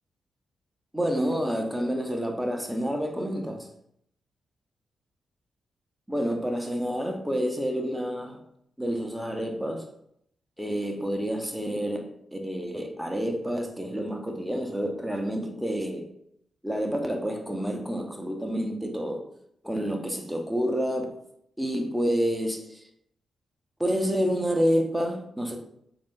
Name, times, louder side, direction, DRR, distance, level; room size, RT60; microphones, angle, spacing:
voice 1, 0.9-3.7 6.1-8.4 8.8-9.8 10.6-16.1 16.6-19.3 19.6-21.2 21.6-22.8 23.8-25.6, equal, 5° right, 2 dB, 0.7 m, -28 dB
3.3 x 2.5 x 3.7 m, 0.72 s
cardioid pair, 75°, 0 cm